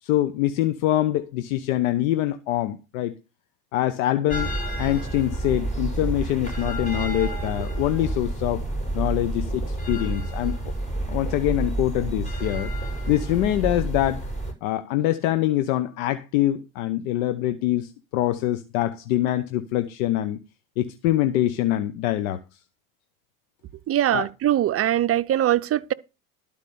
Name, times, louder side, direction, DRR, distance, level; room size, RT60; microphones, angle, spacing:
voice 1, 0.0-3.1 3.7-4.5 4.8-8.6 8.9-10.6 11.1-12.7 13.1-14.2 14.6-20.4 20.8-22.4 24.1-24.3, left 14 dB, 75° left, 1.1 m, -24 dB
sound 1, 4.3-14.5, right 1 dB, 15° left, 6.4 m, -29 dB
voice 2, 23.9-25.9, right 12 dB, 35° right, 0.7 m, -22 dB
12.0 x 5.1 x 6.9 m
supercardioid pair, 90°, 42 cm